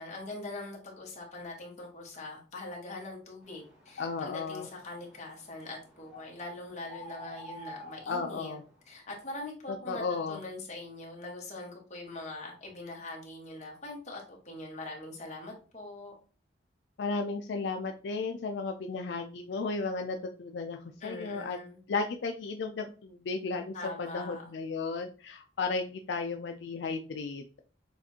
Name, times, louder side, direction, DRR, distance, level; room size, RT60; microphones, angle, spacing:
voice 1, 0.0-8.6 8.9-16.1 21.0-21.8 23.7-24.5, left 2 dB, 40° left, -1 dB, 1.3 m, -42 dB
sound 1, 3.4-9.0, equal, 5° right, 1.4 m, -50 dB
voice 2, 4.0-4.7 8.1-8.6 9.9-10.4 17.0-21.6 21.9-27.6, left 4 dB, 70° left, 5 dB, 0.4 m, -34 dB
6.7 x 2.5 x 2.8 m, 0.38 s
head